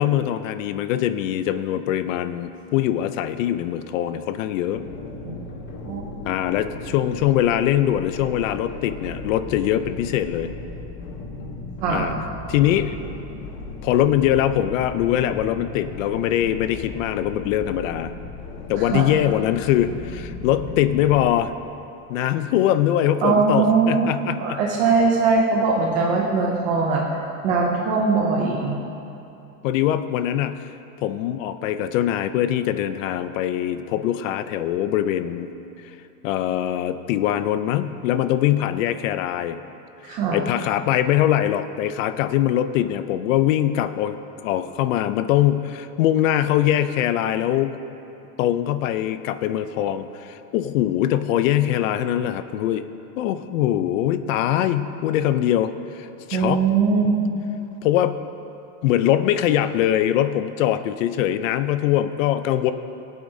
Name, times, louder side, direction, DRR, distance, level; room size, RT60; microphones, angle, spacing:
voice 1, 0.0-4.8 6.3-10.5 11.9-12.2 12.5-13.0 13.8-18.1 18.7-21.5 22.1-24.6 29.6-30.7 31.0-35.5 35.8-36.0 36.2-39.6 40.0-47.8 48.4-52.9 53.2-56.6 57.8-58.2 58.8-62.7, left 11 dB, 60° left, 12 dB, 0.5 m, -22 dB
sound 1, 4.7-21.5, left 2 dB, 35° left, 0.9 m, -36 dB
voice 2, 23.2-24.1 24.4-27.0 27.4-28.8 40.0-40.4 56.3-57.4, right 4 dB, 20° right, -1 dB, 0.3 m, -21 dB
18.0 x 8.6 x 2.7 m, 2.8 s
supercardioid pair, 165°, 45 cm